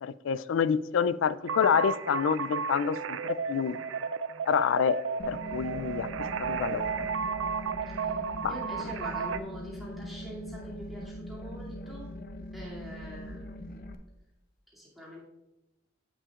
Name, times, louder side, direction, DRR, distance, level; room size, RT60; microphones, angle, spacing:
voice 1, 0.0-3.8 4.5-5.0 5.3-6.1 6.4-7.1 8.4-8.5, left 7 dB, 75° left, 0.3 m, -27 dB
sound 1, 1.5-9.4, right 6 dB, 80° right, 0.4 m, -33 dB
sound 2, 5.2-13.9, equal, 45° left, 0.7 m, -41 dB
voice 2, 8.5-12.1 12.5-13.6 14.7-15.2, equal, ahead, 2.5 m, -44 dB
15.5 x 5.7 x 2.4 m
head